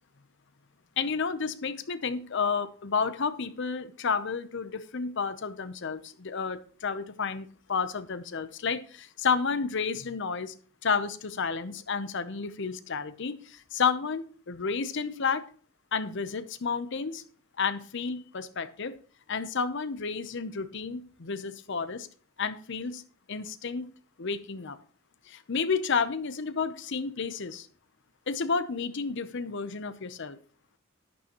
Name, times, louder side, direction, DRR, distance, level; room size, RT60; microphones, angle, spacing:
voice 1, 1.0-10.5 10.8-15.4 15.9-17.2 17.6-18.9 19.3-22.1 22.4-23.0 23.3-23.9 24.2-24.8 25.3-27.7 28.3-30.4, left 5 dB, 55° left, 13 dB, 0.7 m, -31 dB
11.0 x 9.6 x 3.0 m, 0.43 s
head